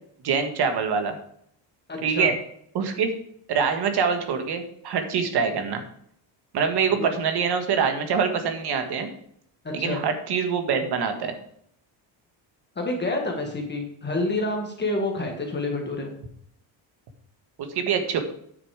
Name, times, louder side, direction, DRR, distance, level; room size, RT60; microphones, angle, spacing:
voice 1, 0.2-1.2 2.0-2.4 2.7-3.1 3.5-5.8 6.5-9.1 9.7-11.3 17.6-18.2, right 6 dB, 55° right, 6 dB, 1.7 m, -24 dB
voice 2, 1.9-2.3 7.0-7.1 9.8-10.0 12.7-16.1, left 2 dB, 20° left, 1 dB, 1.5 m, -28 dB
9.5 x 6.9 x 4.8 m, 0.68 s
cardioid pair, 155°, 48 cm